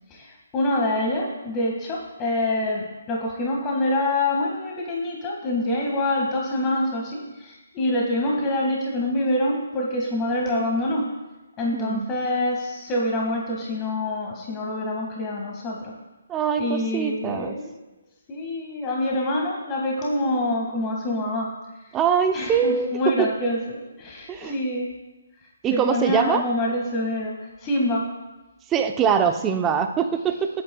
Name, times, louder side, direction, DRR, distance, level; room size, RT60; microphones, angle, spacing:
voice 1, 0.1-11.1 11.6-15.9 16.6-17.7 18.3-21.5 22.3-24.9 25.7-28.1, left 1 dB, 20° left, -1 dB, 1.9 m, -26 dB
voice 2, 11.7-12.1 16.3-17.5 21.9-23.3 24.3-24.6 25.6-26.4 28.7-30.5, right 7 dB, 15° right, 6 dB, 0.7 m, -23 dB
19.5 x 8.5 x 2.3 m, 1.1 s
figure-of-eight pair, 145°, 0 cm